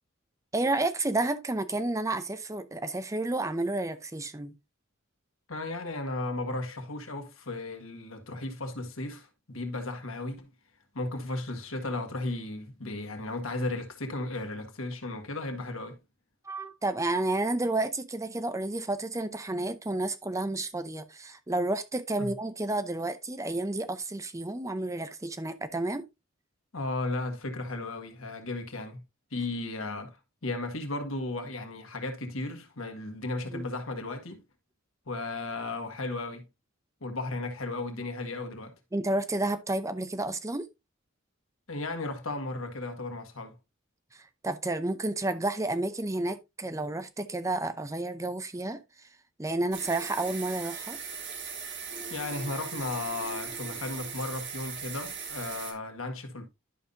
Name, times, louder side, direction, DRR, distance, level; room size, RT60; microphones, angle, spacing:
voice 1, 0.5-4.5 16.5-26.0 33.5-33.6 38.9-40.7 44.4-48.8 49.4-51.0, right 2 dB, 15° right, 0.6 m, -31 dB
voice 2, 5.5-10.5 10.9-16.0 22.2-22.3 26.7-29.0 29.3-34.4 35.1-36.5 37.0-38.7 41.7-43.6 52.1-56.5, left 2 dB, 90° left, 1.7 m, -35 dB
sound 1, 49.7-55.7, right 6 dB, 60° right, 2.1 m, -39 dB
11.0 x 5.5 x 2.6 m
head